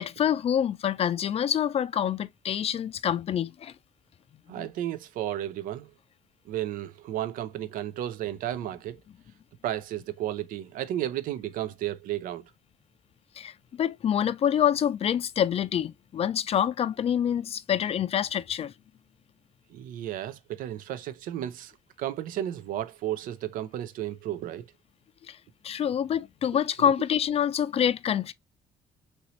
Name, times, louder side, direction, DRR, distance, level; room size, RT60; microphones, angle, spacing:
voice 1, 0.0-3.7 4.6-4.7 13.4-18.7 25.3-25.4 25.6-28.3, left 9 dB, 45° left, 0.4 m, -26 dB
voice 2, 4.5-5.9 6.5-9.0 9.6-12.4 19.7-21.7 22.0-24.7, right 12 dB, 75° right, 0.5 m, -33 dB
2.9 x 2.7 x 3.0 m
supercardioid pair, 75°, 14 cm